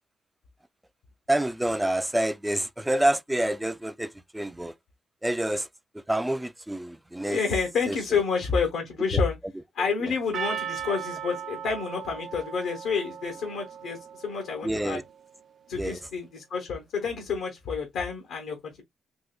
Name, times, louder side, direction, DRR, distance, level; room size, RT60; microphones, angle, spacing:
voice 1, 1.3-4.7 5.2-5.7 6.1-7.4 7.9-8.0 9.1-9.2 14.6-15.0 15.8-16.0, right 1 dB, 5° right, 0.3 m, -27 dB
voice 2, 7.2-9.4 9.7-15.0 15.7-18.8, left 5 dB, 80° left, 0.9 m, -29 dB
Percussion, 10.3-14.9, right 8 dB, 60° right, 0.6 m, -37 dB
3.7 x 2.9 x 2.3 m
cardioid pair, 90°, 0 cm